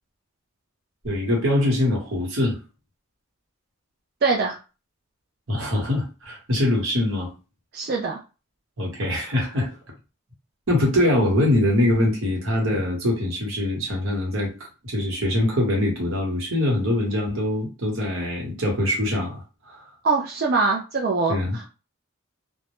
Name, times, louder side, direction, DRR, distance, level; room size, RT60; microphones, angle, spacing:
voice 1, 1.0-2.6 5.5-7.3 8.8-9.7 10.7-14.5 14.8-19.8 21.3-21.6, left 1 dB, 80° right, -1 dB, 1.0 m, -23 dB
voice 2, 4.2-4.6 7.7-8.2 20.0-21.7, right 4 dB, 50° right, 0 dB, 0.3 m, -23 dB
2.1 x 2.0 x 2.9 m, 0.32 s
head